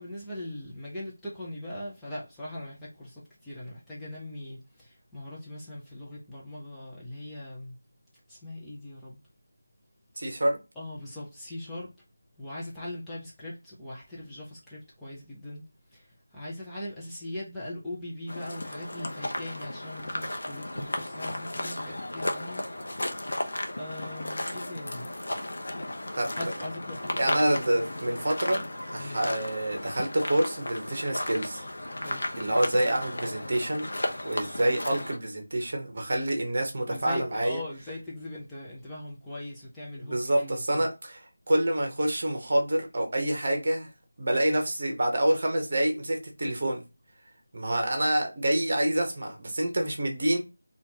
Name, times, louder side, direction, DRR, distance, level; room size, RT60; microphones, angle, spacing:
voice 1, 0.0-7.7 8.3-9.2 10.8-11.9 12.4-15.6 15.9-22.7 23.8-25.1 26.4-27.6 29.0-29.2 32.0-32.2 36.9-40.9, left 1 dB, 5° left, 0.8 m, -40 dB
voice 2, 10.2-10.6 26.2-26.3 27.2-31.6 32.4-33.9 34.2-37.6 40.0-43.9 44.2-46.8 47.5-50.4, right 1 dB, 45° right, 1.2 m, -27 dB
sound 1, 18.3-35.2, left 1 dB, 65° left, 0.8 m, -34 dB
4.2 x 2.5 x 2.9 m
figure-of-eight pair, 165°, 0 cm